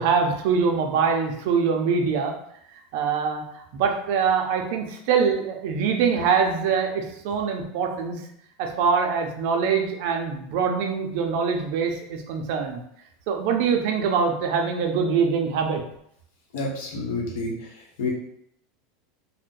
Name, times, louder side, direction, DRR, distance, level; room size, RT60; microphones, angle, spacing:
voice 1, 0.0-2.3 2.9-3.4 3.7-8.2 8.6-12.8 13.3-15.8, right 6 dB, 55° right, 3 dB, 0.5 m, -23 dB
voice 2, 16.5-18.1, left 2 dB, 70° left, -1 dB, 0.8 m, -30 dB
2.6 x 2.1 x 3.7 m, 0.72 s
supercardioid pair, 165°, 0 cm